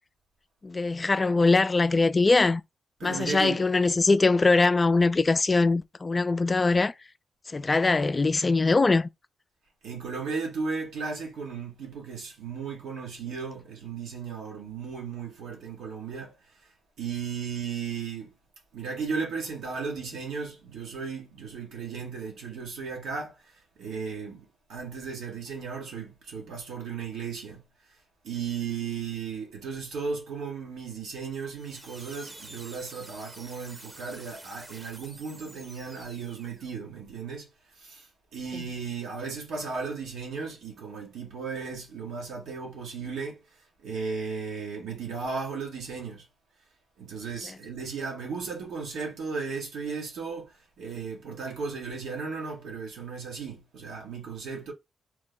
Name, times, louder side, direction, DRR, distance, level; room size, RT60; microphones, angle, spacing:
voice 1, 0.6-2.6 3.0-6.9 7.5-9.1 38.5-38.6 47.4-47.5, left 3 dB, 35° left, 0.3 m, -22 dB
voice 2, 3.0-3.7 9.8-16.3 17.0-18.3 18.7-23.4 23.8-27.6 28.2-37.5 37.8-38.1 38.3-43.4 43.8-46.2 47.0-54.7, right 5 dB, 85° right, 1.2 m, -35 dB
sound 1, 31.6-36.7, right 2 dB, 30° right, 0.8 m, -48 dB
3.1 x 2.1 x 3.6 m
supercardioid pair, 55°, 0 cm